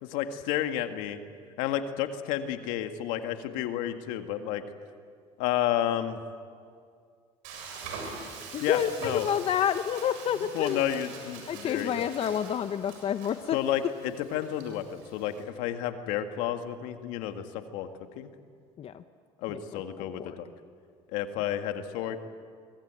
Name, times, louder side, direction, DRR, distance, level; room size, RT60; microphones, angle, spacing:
voice 1, 0.0-1.2 1.6-4.6 5.4-6.2 8.6-9.3 10.4-12.1 13.5-17.9 18.2-18.3 19.4-20.5 21.1-22.2, left 11 dB, 80° left, 7 dB, 1.9 m, -31 dB
Frying (food), 7.4-15.4, right 4 dB, 80° right, 7.6 m, -44 dB
voice 2, 8.5-10.8 11.5-13.6 18.8-19.0 19.5-19.8 20.2-20.4, left 9 dB, 50° left, 10 dB, 1.0 m, -29 dB
24.5 x 23.0 x 9.0 m, 2.2 s
supercardioid pair, 90°, 13 cm